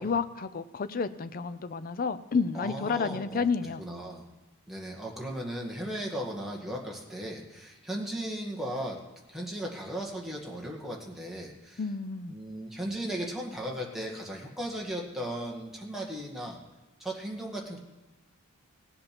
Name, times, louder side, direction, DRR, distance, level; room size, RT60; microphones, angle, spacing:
voice 1, 0.0-3.8 11.8-12.4, left 5 dB, 40° left, 13 dB, 0.5 m, -30 dB
voice 2, 2.5-3.5 3.8-4.2 4.7-9.0 9.3-11.8 12.3-16.6 17.0-17.8, right 1 dB, ahead, -2 dB, 1.8 m, -36 dB
18.0 x 7.8 x 5.9 m, 1.1 s
head